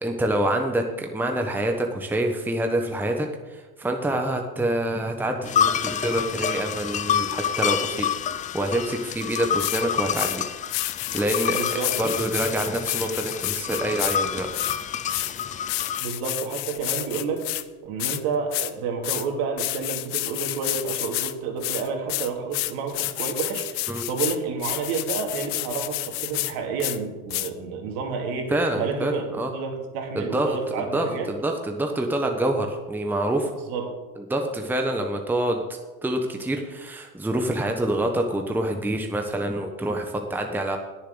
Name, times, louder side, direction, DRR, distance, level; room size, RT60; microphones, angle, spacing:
voice 1, 0.0-10.4 11.1-14.7 23.9-24.0 28.5-29.5 30.1-33.6 34.2-35.6 36.0-40.8, right 1 dB, 5° right, 3 dB, 1.2 m, -26 dB
sound 1, 5.5-16.0, left 8 dB, 20° left, 0.4 m, -28 dB
sound 2, 9.2-9.3 9.6-9.8 10.1-10.4 10.7-14.2 14.5-17.6 18.0-18.2 18.5-18.7 19.0-19.3 19.6-21.3 21.6-26.5 26.8-27.0 27.3-27.5, left 18 dB, 50° left, 0.8 m, -30 dB
voice 2, 11.5-12.1 16.0-17.5 17.8-29.2 29.5-31.3 33.7-33.9, right 5 dB, 60° right, 2 dB, 2.7 m, -30 dB
19.5 x 7.2 x 3.9 m, 1.2 s
hypercardioid pair, 100°, 43 cm